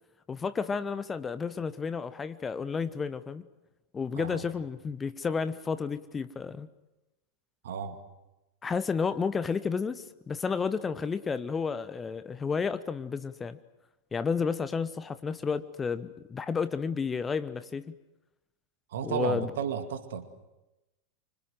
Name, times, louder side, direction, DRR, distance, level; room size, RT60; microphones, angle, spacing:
voice 1, 0.3-3.4 3.9-6.7 8.6-13.6 14.1-17.9 19.0-19.5, left 5 dB, 15° left, 13 dB, 1.0 m, -31 dB
voice 2, 4.2-4.5 7.6-8.0 18.9-20.3, right 7 dB, 60° right, 9 dB, 2.3 m, -33 dB
25.5 x 25.5 x 7.8 m, 0.99 s
figure-of-eight pair, 90°, 0 cm